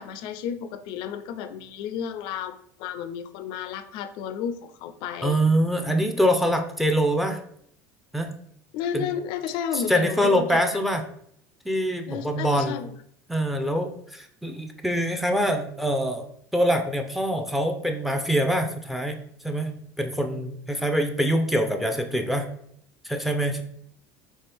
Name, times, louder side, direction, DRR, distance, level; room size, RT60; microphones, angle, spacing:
voice 1, 0.0-5.4 8.7-10.6 12.1-12.9, left 8 dB, 65° left, 10 dB, 0.5 m, -32 dB
voice 2, 5.2-7.4 8.1-8.3 8.9-9.1 9.7-11.0 11.6-12.8 13.3-22.4 23.0-23.6, equal, ahead, 6 dB, 0.6 m, -24 dB
4.3 x 3.3 x 3.4 m, 0.67 s
supercardioid pair, 110°, 9 cm